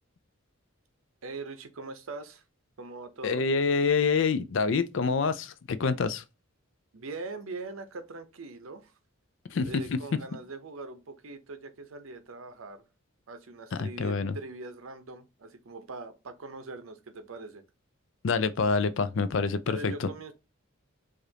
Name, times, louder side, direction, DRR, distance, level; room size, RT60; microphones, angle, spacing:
voice 1, 1.2-2.4 2.8-3.4 6.9-8.9 9.6-12.8 13.3-17.6 19.7-20.3, right 3 dB, 80° right, 0.7 m, -42 dB
voice 2, 3.2-6.2 9.5-10.0 13.7-14.4 18.2-20.1, left 4 dB, 60° left, 0.4 m, -27 dB
4.9 x 2.5 x 2.8 m
head